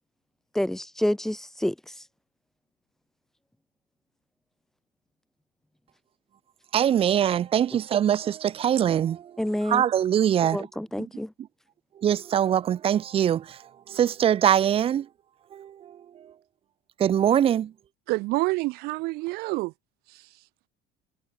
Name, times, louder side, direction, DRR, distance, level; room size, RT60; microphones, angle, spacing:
voice 1, 0.5-1.8 9.4-9.8 10.5-11.3, left 1 dB, ahead, 5.3 m, -28 dB
voice 2, 6.7-9.3 9.6-10.7 11.0-11.1 12.0-13.6 13.9-15.1 15.5-16.3 17.0-17.7, right 10 dB, 30° right, 5.1 m, -23 dB
voice 3, 18.1-19.7 20.1-20.3, right 22 dB, 60° right, 7.2 m, -28 dB
cardioid pair, 165°, 18 cm